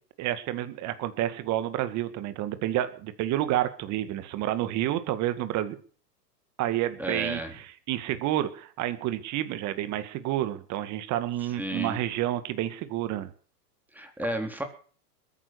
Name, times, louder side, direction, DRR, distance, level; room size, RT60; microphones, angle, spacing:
voice 1, 0.2-5.8 6.6-13.3, right 13 dB, 35° right, 11 dB, 2.0 m, -29 dB
voice 2, 7.0-7.5 11.6-12.0 13.9-14.6, right 1 dB, 5° right, 5 dB, 3.7 m, -32 dB
21.0 x 9.9 x 6.4 m, 0.43 s
hypercardioid pair, 110°, 49 cm